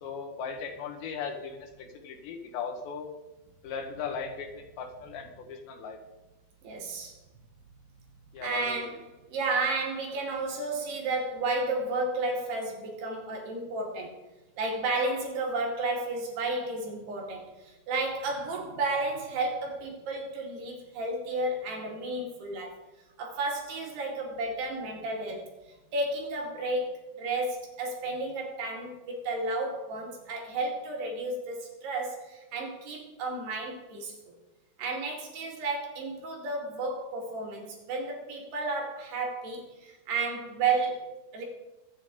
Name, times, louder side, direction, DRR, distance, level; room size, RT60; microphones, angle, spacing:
voice 1, 0.0-3.1 3.6-6.0 8.3-8.8, left 6 dB, 75° left, 5 dB, 3.3 m, -38 dB
voice 2, 6.6-7.1 8.4-9.0 9.3-14.2 14.6-22.8 23.2-25.5 25.9-34.1 34.8-41.4, right 3 dB, 65° right, 0 dB, 4.2 m, -32 dB
24.0 x 8.1 x 3.8 m, 1.0 s
omnidirectional pair, 5.4 m